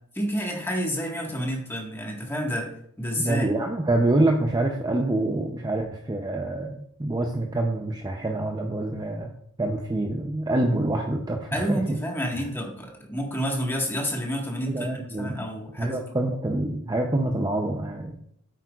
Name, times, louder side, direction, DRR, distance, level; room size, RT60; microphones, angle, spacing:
voice 1, 0.1-3.5 11.5-16.0, equal, 10° left, -1 dB, 1.6 m, -29 dB
voice 2, 3.2-9.3 9.6-12.0 14.7-15.3 15.8-18.2, right 2 dB, 20° right, 2 dB, 0.6 m, -26 dB
8.9 x 7.8 x 2.4 m, 0.66 s
head